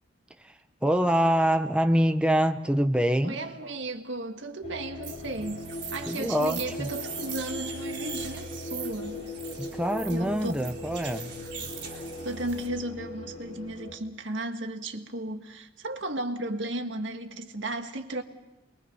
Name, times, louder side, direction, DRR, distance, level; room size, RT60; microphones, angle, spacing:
voice 1, 0.8-3.4 6.1-6.9 9.6-11.3, equal, 5° right, 0.8 m, -25 dB
voice 2, 3.2-5.7 5.9-9.2 10.1-10.7 12.2-18.2, right 1 dB, 90° right, 1.7 m, -35 dB
sound 1, 4.6-13.9, left 2 dB, 35° left, 4.8 m, -39 dB
sound 2, 5.0-12.7, right 7 dB, 65° right, 3.8 m, -41 dB
29.0 x 22.0 x 5.6 m
head